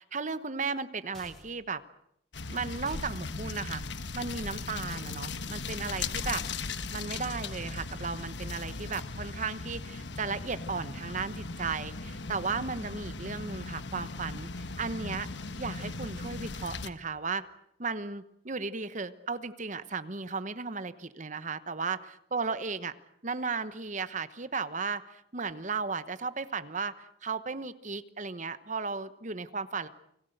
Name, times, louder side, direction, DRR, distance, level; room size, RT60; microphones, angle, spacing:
voice 1, 0.0-1.8 2.5-3.8 4.1-6.4 6.9-14.5 14.8-15.3 15.6-17.4 17.8-22.0 22.3-22.9 23.2-29.9, right 4 dB, 40° right, 13 dB, 1.0 m, -35 dB
sound 1, 1.1-1.7 2.9-3.2 4.9-5.4, equal, ahead, 4.0 m, -51 dB
sound 2, 2.3-16.9, left 3 dB, 65° left, 1.3 m, -38 dB
30.0 x 21.0 x 8.0 m, 0.75 s
head